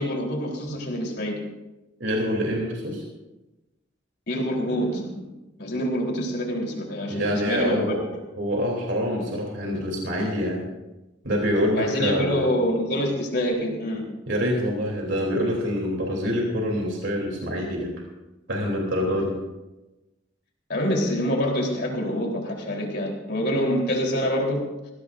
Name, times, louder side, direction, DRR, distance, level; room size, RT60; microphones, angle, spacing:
voice 1, 0.0-1.4 4.3-5.2 5.6-8.0 11.7-14.1 20.7-24.7, equal, 60° left, 0 dB, 3.7 m, -26 dB
voice 2, 2.0-3.0 7.1-8.0 8.4-10.6 11.2-12.5 14.3-17.9 18.5-19.3, equal, 70° right, -1 dB, 3.2 m, -25 dB
20.5 x 16.0 x 2.6 m, 1.0 s
head